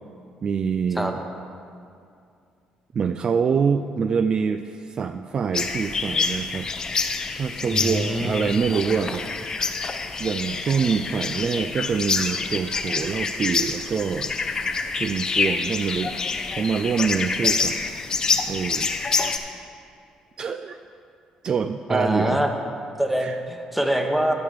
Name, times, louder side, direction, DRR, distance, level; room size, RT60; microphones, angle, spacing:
voice 1, 0.4-1.2 2.9-6.7 7.4-9.3 10.2-14.3 15.0-16.1 16.6-17.8 18.3-18.9 20.4-20.8 21.4-22.4 23.2-23.3, right 6 dB, 40° right, 8 dB, 0.3 m, -25 dB
sound 1, 5.5-19.4, left 4 dB, 35° left, 0.7 m, -27 dB
voice 2, 7.6-8.5 21.9-22.5 23.0-24.3, equal, 5° right, 4 dB, 1.0 m, -24 dB
12.0 x 4.9 x 7.1 m, 2.4 s
cardioid pair, 105°, 2 cm